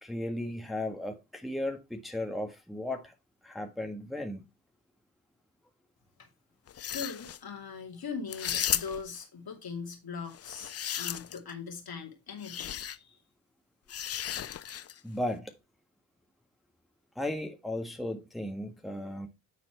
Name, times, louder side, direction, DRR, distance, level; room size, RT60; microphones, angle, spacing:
voice 1, 0.0-3.1 3.4-4.4 15.0-15.5 17.1-19.3, left 1 dB, ahead, 1.6 m, -35 dB
sound 1, 6.7-7.4 8.3-9.2 10.3-11.5 12.4-13.0 13.9-15.0, left 10 dB, 35° left, 0.5 m, -34 dB
voice 2, 6.9-13.2, left 5 dB, 55° left, 2.5 m, -41 dB
9.6 x 4.1 x 4.6 m
supercardioid pair, 55°, 43 cm